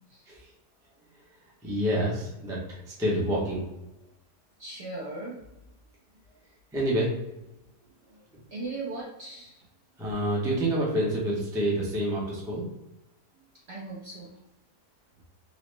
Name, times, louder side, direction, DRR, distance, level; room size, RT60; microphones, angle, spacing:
voice 1, 1.6-3.6 6.7-7.1 10.0-12.6, right 1 dB, 5° right, -5 dB, 0.3 m, -28 dB
voice 2, 4.6-5.4 8.1-8.2 8.5-9.7 13.3-14.4, right 2 dB, 60° right, -5 dB, 0.7 m, -38 dB
3.8 x 2.0 x 3.1 m, 0.93 s
omnidirectional pair, 1.8 m